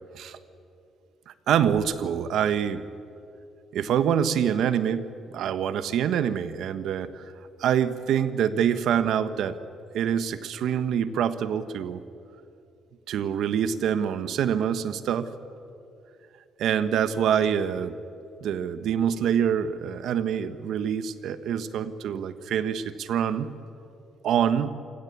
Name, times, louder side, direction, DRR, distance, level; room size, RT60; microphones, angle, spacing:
voice 1, 1.3-2.8 3.7-7.2 7.6-9.6 9.9-12.0 13.1-15.3 16.6-18.0 18.4-23.5 24.2-24.7, right 8 dB, 75° right, 12 dB, 1.2 m, -25 dB
28.0 x 17.0 x 8.5 m, 2.6 s
cardioid pair, 90°, 0 cm